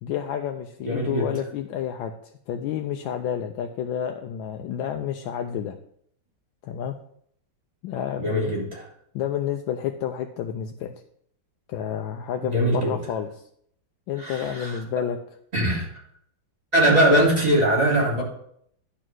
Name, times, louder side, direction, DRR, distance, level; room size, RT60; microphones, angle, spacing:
voice 1, 0.0-5.7 6.6-6.9 7.8-8.5 9.1-10.9 11.7-13.3 14.1-15.2 16.9-17.0, left 9 dB, 80° left, 4 dB, 1.4 m, -30 dB
voice 2, 0.8-1.3 8.2-8.8 12.4-12.9 14.2-14.8 15.5-16.0 16.7-18.2, right 1 dB, 20° right, -4 dB, 3.3 m, -21 dB
11.0 x 3.8 x 6.1 m, 0.69 s
omnidirectional pair, 2.1 m